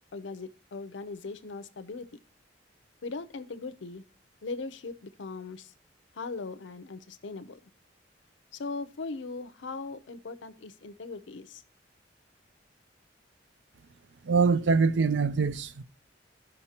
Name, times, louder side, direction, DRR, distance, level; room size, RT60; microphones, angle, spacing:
voice 1, 0.1-2.1 3.0-4.0 4.4-5.7 6.1-7.6 8.5-11.6, left 3 dB, 75° left, 0.6 m, -39 dB
voice 2, 14.2-15.8, right 4 dB, 70° right, 0.5 m, -24 dB
15.0 x 5.3 x 2.8 m
head